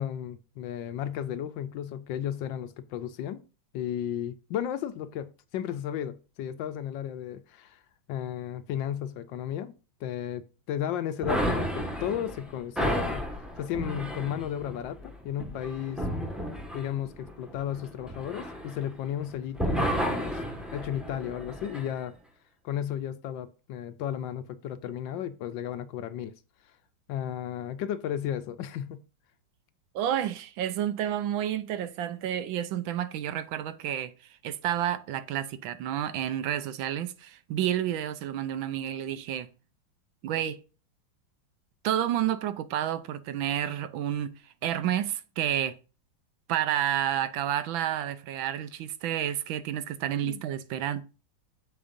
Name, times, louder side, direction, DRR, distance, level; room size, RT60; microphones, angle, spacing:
voice 1, 0.0-3.4 3.7-7.8 8.1-9.7 10.0-13.2 13.6-16.1 16.7-20.4 20.7-22.1 22.6-26.3 27.1-29.0 50.2-50.4, left 10 dB, 75° left, 1.2 m, -34 dB
sound 1, 11.2-19.2 19.5-21.9, equal, ahead, 1.2 m, -32 dB
voice 2, 29.9-39.5 40.2-40.6 41.8-44.3 44.6-45.8 46.5-51.0, right 11 dB, 75° right, 1.4 m, -30 dB
8.7 x 7.0 x 2.6 m
omnidirectional pair, 2.2 m